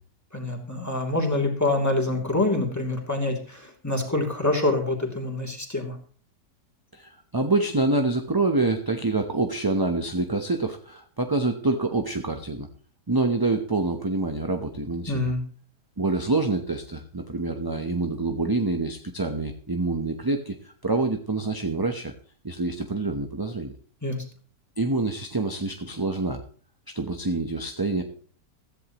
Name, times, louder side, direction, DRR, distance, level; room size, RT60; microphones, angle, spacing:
voice 1, 0.3-6.0 15.1-15.4 24.0-24.2, left 2 dB, 10° left, 1 dB, 2.8 m, -26 dB
voice 2, 6.9-12.7 13.1-15.2 16.0-22.1 22.4-23.7 24.8-26.4 26.9-28.0, right 3 dB, 20° right, 5 dB, 0.8 m, -26 dB
16.0 x 14.5 x 3.0 m, 0.43 s
omnidirectional pair, 1.6 m